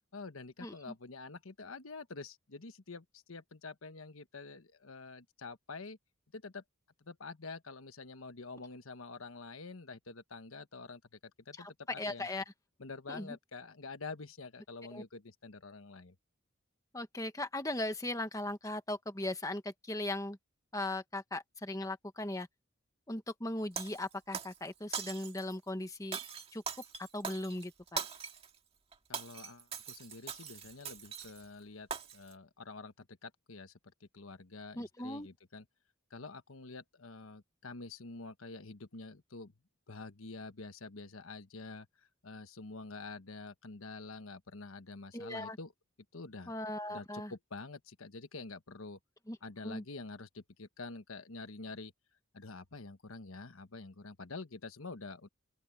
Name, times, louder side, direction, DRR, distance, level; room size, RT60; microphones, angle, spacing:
voice 1, 0.1-6.0 6.3-6.6 7.0-12.3 12.8-16.1 29.1-33.7 34.0-35.6 36.1-39.5 39.9-41.9 42.2-45.7 46.1-46.5 46.9-49.0 49.4-51.9 52.3-55.3, left 3 dB, 85° left, 1.2 m, -47 dB
voice 2, 12.0-12.4 13.1-13.4 14.9-15.0 16.9-20.4 20.7-22.5 23.1-26.2 26.5-26.6 27.1-28.0 34.7-35.3 45.1-45.6 46.5-47.3 49.3-49.4 49.6-49.8, left 1 dB, 15° left, 1.4 m, -38 dB
Shatter, 23.8-24.6 24.9-25.5 26.1-28.5 28.9-31.5 31.9-32.3, right 6 dB, 30° right, 2.0 m, -41 dB
open air
head